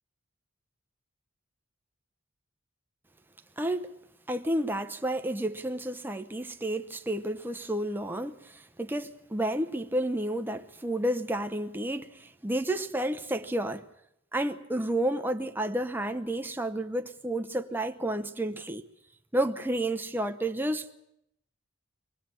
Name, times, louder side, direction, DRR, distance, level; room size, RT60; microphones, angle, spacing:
voice 1, 3.6-3.9 4.3-13.9 14.3-18.9 19.3-20.9, right 1 dB, 10° right, 0.9 m, -31 dB
23.0 x 19.0 x 8.6 m
head